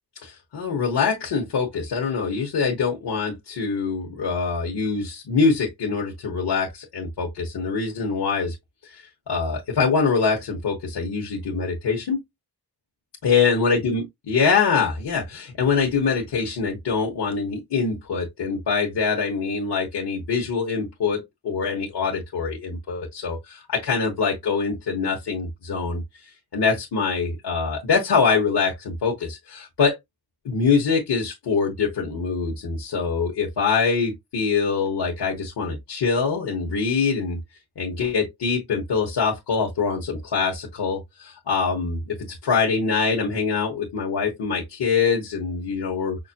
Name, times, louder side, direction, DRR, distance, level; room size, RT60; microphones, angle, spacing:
voice 1, 0.2-8.5 8.8-12.2 13.2-26.0 26.5-30.0 30.4-37.4 37.8-46.2, left 5 dB, 80° left, 1.2 m, -24 dB
5.7 x 2.1 x 2.8 m
wide cardioid pair, 130°, 39 cm